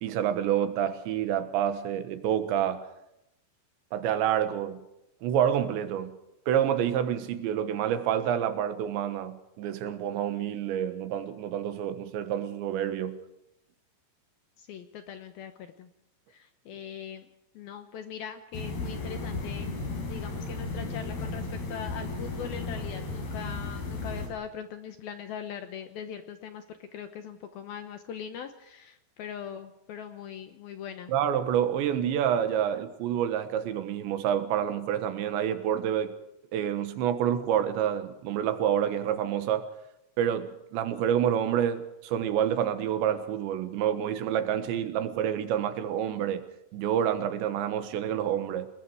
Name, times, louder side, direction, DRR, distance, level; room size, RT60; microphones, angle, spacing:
voice 1, 0.0-2.9 3.9-4.8 5.2-6.2 6.5-13.2 31.1-36.2 36.5-39.7 40.2-46.5 46.7-48.7, right 9 dB, 75° right, 3.5 m, -28 dB
voice 2, 14.6-15.9 16.3-17.3 17.5-19.7 20.1-31.1, left 8 dB, 70° left, 2.3 m, -41 dB
sound 1, 18.5-24.3, left 3 dB, 55° left, 6.1 m, -35 dB
28.5 x 20.0 x 4.9 m
omnidirectional pair, 5.4 m